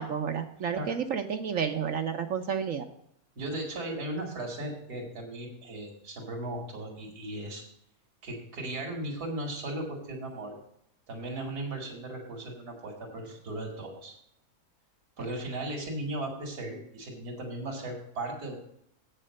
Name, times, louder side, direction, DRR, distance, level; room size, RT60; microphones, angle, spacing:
voice 1, 0.0-2.9, right 7 dB, 65° right, 5 dB, 1.1 m, -31 dB
voice 2, 3.3-7.6 8.2-10.6 11.1-14.2 15.2-18.6, right 1 dB, 85° right, -1 dB, 2.7 m, -37 dB
8.5 x 6.6 x 6.3 m, 0.74 s
omnidirectional pair, 1.6 m